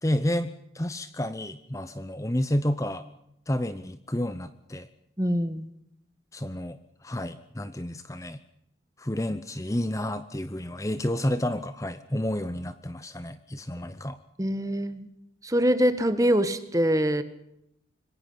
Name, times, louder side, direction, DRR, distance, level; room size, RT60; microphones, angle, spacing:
voice 1, 0.0-3.0 3.5-4.9 6.3-8.4 9.0-14.2, left 1 dB, 15° left, 12 dB, 0.8 m, -30 dB
voice 2, 5.2-5.7 14.4-15.1 15.4-17.2, equal, 20° right, 11 dB, 1.6 m, -24 dB
26.0 x 22.5 x 5.7 m, 0.79 s
head